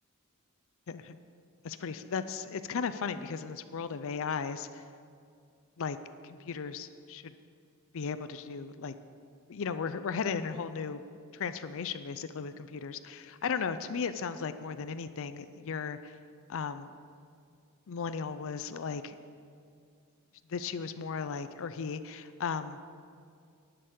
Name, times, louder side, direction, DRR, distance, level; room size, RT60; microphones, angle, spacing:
voice 1, 0.9-1.2 1.6-4.8 5.8-6.0 6.2-7.3 7.9-8.9 9.5-11.0 11.3-16.2 16.5-16.9 17.9-19.2 20.5-22.8, left 6 dB, 65° left, 12 dB, 0.5 m, -36 dB
11.0 x 6.8 x 8.3 m, 2.3 s
head